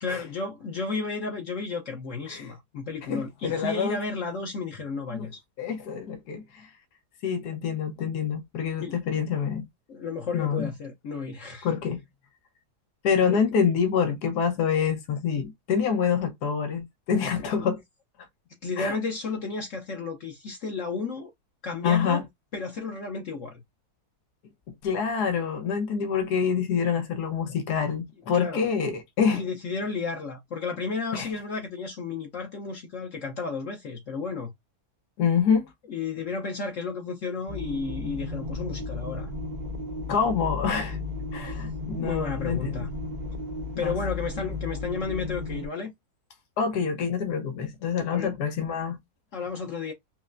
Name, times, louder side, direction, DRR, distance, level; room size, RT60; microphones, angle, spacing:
voice 1, 0.0-5.4 8.8-8.9 9.9-11.7 13.3-13.4 17.2-17.8 18.6-21.3 21.6-22.2 22.5-23.6 28.3-28.7 29.3-34.5 35.9-39.3 42.0-42.9 43.8-45.9 48.1-48.3 49.3-49.9, left 4 dB, 60° left, 1.1 m, -33 dB
voice 2, 3.1-4.0 5.1-5.3 5.6-6.7 7.2-9.7 10.3-10.7 11.6-12.0 13.0-17.8 18.8-19.0 21.8-22.2 24.8-29.4 31.1-31.3 35.2-35.7 40.1-41.0 41.3-42.9 43.8-43.9 46.6-49.0, left 6 dB, 80° left, 1.4 m, -26 dB
sound 1, 37.5-45.7, left 3 dB, 40° right, 0.6 m, -34 dB
5.5 x 2.0 x 2.5 m
omnidirectional pair, 1.7 m